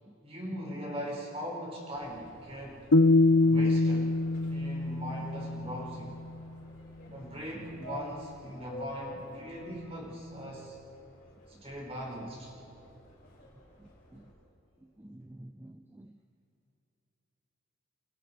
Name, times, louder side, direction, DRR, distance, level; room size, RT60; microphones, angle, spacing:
voice 1, 0.2-2.9 3.4-4.1 4.5-6.2 7.1-10.8 11.5-12.5, equal, 25° right, -2 dB, 5.1 m, -40 dB
Subway metro underground, 1.9-14.3, left 1 dB, 40° left, 6.0 m, -51 dB
sound 1, 2.9-6.1, left 2 dB, 70° left, 0.7 m, -24 dB
voice 2, 15.0-16.1, right 1 dB, 10° right, 9 dB, 0.4 m, -49 dB
28.5 x 28.5 x 4.6 m, 2.8 s
head